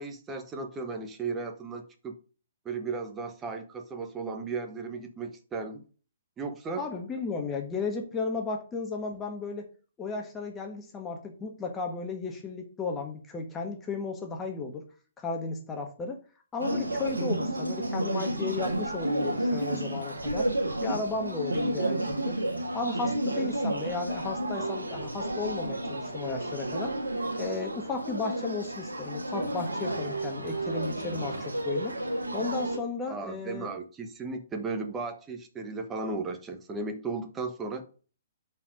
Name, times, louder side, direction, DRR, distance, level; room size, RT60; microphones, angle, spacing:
voice 1, 0.0-2.1 2.6-5.8 6.4-6.9 33.1-37.8, right 4 dB, 15° right, 6 dB, 1.1 m, -35 dB
voice 2, 6.8-9.7 10.0-14.9 15.2-16.2 16.5-20.5 20.8-22.4 22.7-26.9 27.4-32.0 32.3-33.7, left 4 dB, 15° left, 3 dB, 1.4 m, -34 dB
sound 1, 16.6-32.8, right 1 dB, 80° right, 1.6 m, -31 dB
5.6 x 4.6 x 6.4 m, 0.37 s
figure-of-eight pair, 125°, 0 cm